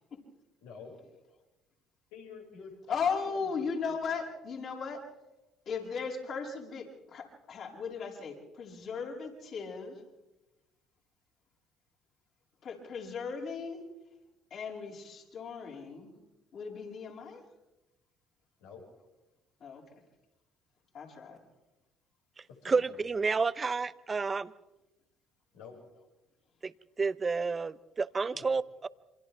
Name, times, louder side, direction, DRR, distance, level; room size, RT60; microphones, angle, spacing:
voice 1, 0.6-1.0 2.1-4.0 18.6-18.8 22.5-23.0 25.5-25.8 28.3-28.4, left 5 dB, 80° left, -1 dB, 6.0 m, -49 dB
voice 2, 2.9-5.0 5.7-10.0 12.6-13.8 14.5-16.1 16.5-17.4 19.6-19.8 20.9-21.4, left 5 dB, 55° left, -2 dB, 7.7 m, -37 dB
voice 3, 22.7-24.5 26.6-28.9, right 4 dB, 30° right, 16 dB, 0.8 m, -30 dB
28.5 x 26.0 x 3.6 m, 1.0 s
hypercardioid pair, 65°, 0 cm